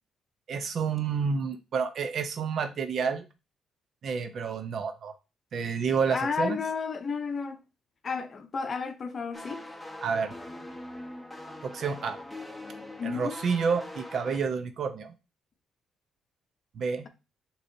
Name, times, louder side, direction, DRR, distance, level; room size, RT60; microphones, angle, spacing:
voice 1, 0.5-3.3 4.0-5.1 5.5-6.6 10.0-10.3 11.6-12.2 13.0-15.1 16.7-17.1, right 5 dB, 60° right, 0.7 m, -29 dB
voice 2, 6.1-7.6 8.0-9.6 13.0-13.4, left 5 dB, 45° left, 0.7 m, -32 dB
sound 1, 9.3-14.4, left 1 dB, 5° left, 1.0 m, -42 dB
6.4 x 3.0 x 2.7 m
cardioid pair, 85°, 0 cm